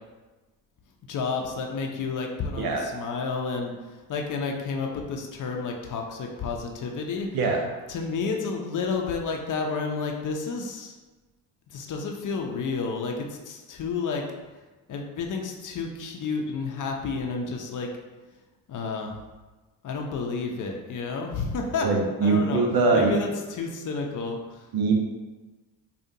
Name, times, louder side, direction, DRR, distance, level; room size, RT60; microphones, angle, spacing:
voice 1, 1.1-3.7 4.1-10.9 11.7-14.2 14.9-17.9 18.7-19.1 19.8-21.9 22.2-24.7, left 4 dB, 45° left, 2 dB, 0.7 m, -31 dB
voice 2, 21.8-23.1 24.7-24.9, right 4 dB, 55° right, 2 dB, 0.8 m, -22 dB
5.0 x 2.5 x 2.7 m, 1.2 s
supercardioid pair, 75°, 44 cm